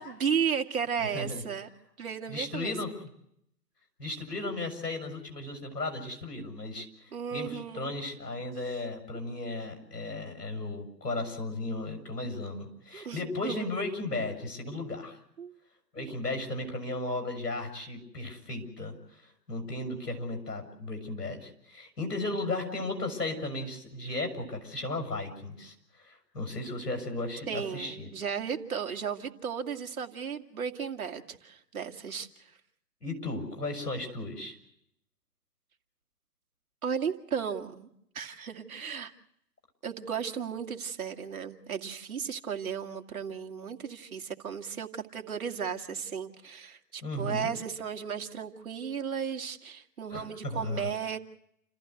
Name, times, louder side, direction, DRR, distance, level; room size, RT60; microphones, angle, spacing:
voice 1, 0.0-1.7 2.0-2.7 7.1-8.0 12.9-13.7 15.4-15.5 16.0-16.1 27.5-32.6 36.8-37.9 38.1-39.1 39.8-51.2, right 7 dB, 60° right, 5 dB, 2.5 m, -35 dB
voice 2, 1.0-1.4 2.3-2.9 4.0-15.2 15.9-28.1 33.0-34.6 47.0-47.5 50.1-50.9, left 2 dB, 75° left, 4 dB, 7.1 m, -35 dB
29.0 x 15.0 x 8.1 m, 0.74 s
figure-of-eight pair, 135°, 48 cm